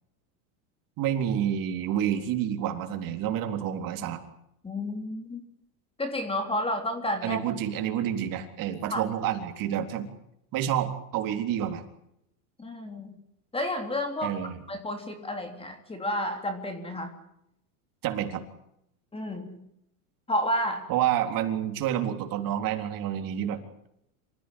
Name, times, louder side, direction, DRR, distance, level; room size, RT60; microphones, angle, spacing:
voice 1, 1.0-4.2 7.2-10.1 10.5-11.8 14.2-14.6 18.0-18.4 20.9-23.6, right 10 dB, 50° right, 5 dB, 3.8 m, -29 dB
voice 2, 4.6-5.4 6.0-7.4 8.9-9.0 12.6-13.1 13.5-14.4 14.7-17.1 19.1-19.6 20.3-20.9, left 1 dB, 15° left, 5 dB, 3.4 m, -31 dB
27.0 x 15.0 x 10.0 m, 0.79 s
supercardioid pair, 140°, 43 cm